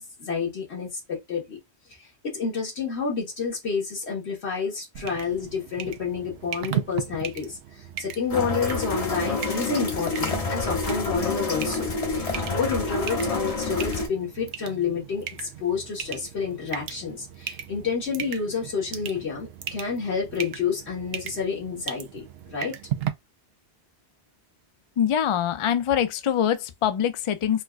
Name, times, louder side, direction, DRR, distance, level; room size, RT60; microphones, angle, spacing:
voice 1, 0.0-1.6 2.0-7.6 8.0-11.9 12.1-22.8, left 5 dB, 90° left, 1.7 m, -29 dB
sound 1, 4.9-23.1, right 10 dB, 75° right, 0.8 m, -37 dB
sound 2, 8.3-14.1, left 3 dB, 40° left, 0.8 m, -28 dB
voice 2, 25.0-27.6, left 9 dB, 55° left, 0.3 m, -24 dB
4.4 x 2.3 x 2.4 m
omnidirectional pair, 1.1 m